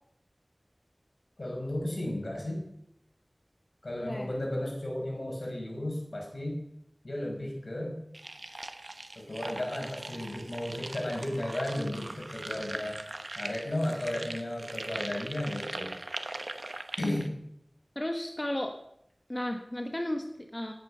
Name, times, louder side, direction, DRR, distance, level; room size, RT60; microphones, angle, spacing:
voice 1, 1.4-2.6 3.8-6.6 7.0-8.0 9.1-13.0 13.3-15.9 17.0-17.3, left 1 dB, 75° left, 0 dB, 5.8 m, -34 dB
voice 2, 4.0-4.3 17.9-18.8 19.3-20.7, left 1 dB, 30° left, 4 dB, 1.4 m, -34 dB
sound 1, 8.1-17.3, right 2 dB, 65° right, 1.1 m, -40 dB
17.5 x 9.3 x 6.7 m, 0.77 s
wide cardioid pair, 45°, 0 cm